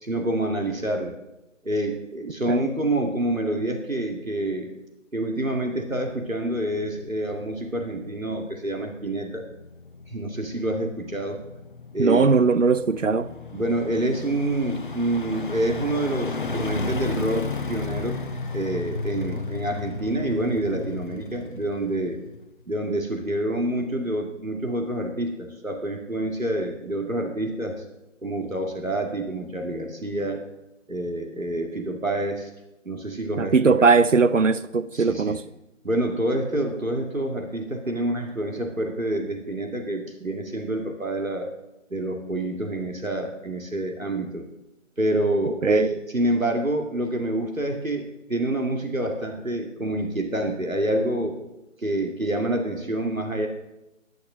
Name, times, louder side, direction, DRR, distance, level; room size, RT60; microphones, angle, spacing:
voice 1, 0.0-1.2 1.6-4.7 5.1-9.5 10.1-11.4 11.9-12.3 13.5-22.2 22.7-27.8 28.2-30.5 30.9-32.5 32.9-33.7 34.9-35.4 35.8-41.5 41.9-44.5 45.0-51.4 51.8-53.5, right 1 dB, 85° right, 2.2 m, -27 dB
sound 1, 6.2-22.7 23.1-23.2, left 3 dB, 40° left, 0.8 m, -35 dB
voice 2, 12.0-13.3 33.4-35.4 45.6-45.9, right 4 dB, 70° right, 0.8 m, -19 dB
11.0 x 10.5 x 6.2 m
figure-of-eight pair, 150°, 39 cm